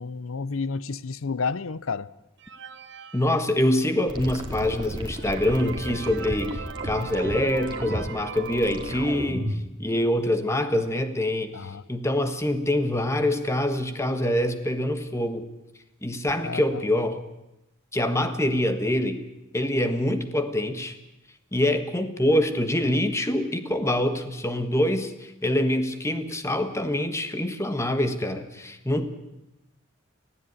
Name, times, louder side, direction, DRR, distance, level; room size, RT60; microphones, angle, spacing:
voice 1, 0.0-2.1 11.5-11.8 16.4-16.8, left 4 dB, 80° left, 0.6 m, -31 dB
sound 1, 2.4-4.0 4.6-4.7 5.0-9.6, right 5 dB, 60° right, 1.1 m, -40 dB
voice 2, 3.1-15.5 16.0-17.2 17.9-19.2 19.5-20.9 21.5-29.1, left 1 dB, 15° left, 1.4 m, -25 dB
sound 2, 4.1-9.7, equal, 25° right, 2.4 m, -33 dB
19.0 x 15.5 x 9.6 m
head